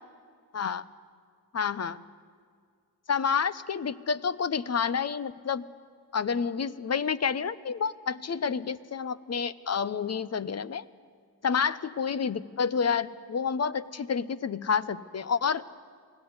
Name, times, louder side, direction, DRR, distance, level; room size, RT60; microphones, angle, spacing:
voice 1, 0.5-0.8 1.5-2.0 3.1-5.6 6.1-10.8 11.4-15.6, left 6 dB, 40° left, 16 dB, 0.9 m, -29 dB
24.5 x 17.0 x 9.6 m, 2.1 s
cardioid pair, 70°, 41 cm